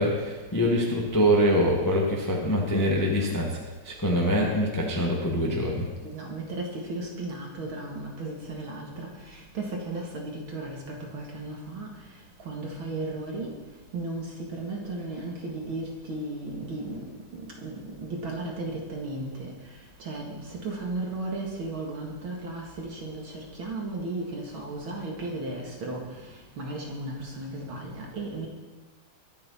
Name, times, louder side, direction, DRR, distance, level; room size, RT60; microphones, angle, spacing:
voice 1, 0.0-3.6 3.8-5.9, equal, 10° left, -2 dB, 1.2 m, -24 dB
voice 2, 6.0-11.9 12.4-13.5 13.9-17.0 17.3-19.5 20.0-23.3 23.6-26.0 26.6-28.5, right 2 dB, 45° right, -1 dB, 2.3 m, -35 dB
23.0 x 7.8 x 4.3 m, 1.2 s
omnidirectional pair, 3.4 m